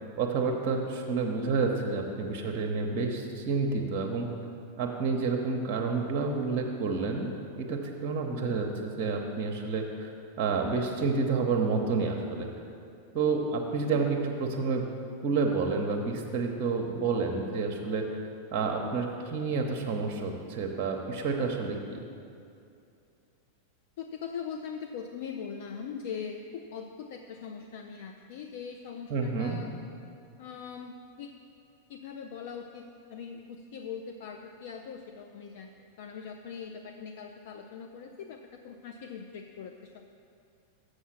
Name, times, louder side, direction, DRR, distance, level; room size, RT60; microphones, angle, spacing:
voice 1, 0.2-4.3 4.8-10.1 10.4-12.5 13.1-14.9 15.2-18.0 18.5-22.0 29.1-29.6, right 4 dB, 35° right, 2 dB, 0.8 m, -29 dB
voice 2, 24.0-29.7 30.4-31.3 31.9-40.0, left 6 dB, 55° left, 4 dB, 0.4 m, -41 dB
7.2 x 6.5 x 5.9 m, 2.5 s
figure-of-eight pair, 90°, 0 cm